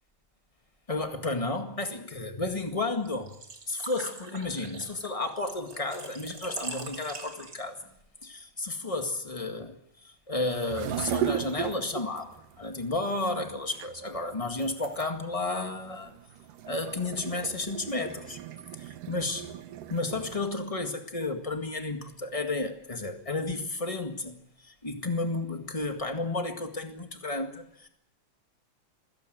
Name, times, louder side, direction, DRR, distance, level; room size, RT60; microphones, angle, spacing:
voice 1, 0.9-3.3 3.7-7.8 8.2-9.8 10.0-16.2 16.7-18.4 19.1-19.5 19.9-27.9, left 2 dB, 15° left, 1.2 m, -32 dB
Engine / Trickle dribble / Fill (with liquid), 3.0-7.9, right 3 dB, 30° right, 2.9 m, -42 dB
sound 1, 10.5-20.5, right 10 dB, 90° right, 2.8 m, -37 dB
27.0 x 17.0 x 8.0 m
omnidirectional pair, 3.6 m